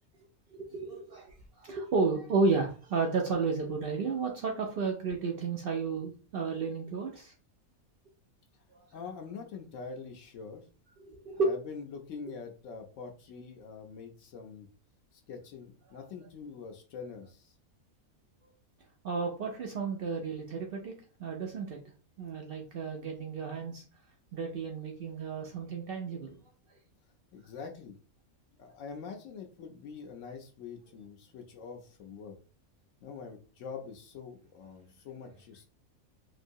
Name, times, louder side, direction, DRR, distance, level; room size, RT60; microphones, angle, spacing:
voice 1, 0.5-7.3 8.7-8.9 11.0-11.5 19.0-20.9 21.2-21.8 22.2-23.8 24.3-26.3, right 4 dB, 75° right, 1 dB, 0.5 m, -32 dB
voice 2, 8.9-10.6 11.4-14.7 15.1-17.5 27.3-27.9 28.6-32.3 33.0-35.6, left 5 dB, 70° left, 3 dB, 0.9 m, -44 dB
3.0 x 2.7 x 2.6 m, 0.38 s
omnidirectional pair, 1.5 m